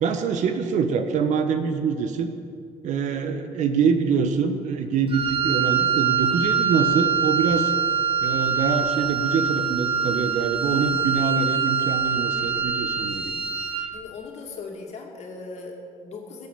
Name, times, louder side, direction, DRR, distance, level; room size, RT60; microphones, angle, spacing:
voice 1, 0.0-2.3 2.8-7.7 8.2-13.4, right 6 dB, 70° right, 7 dB, 1.3 m, -25 dB
Wind instrument woodwind instrument, 5.1-14.0, right 6 dB, 45° right, 1.1 m, -24 dB
voice 2, 13.9-16.5, left 4 dB, 60° left, 1 dB, 2.5 m, -39 dB
16.0 x 8.3 x 6.9 m, 2.4 s
cardioid pair, 105°, 13 cm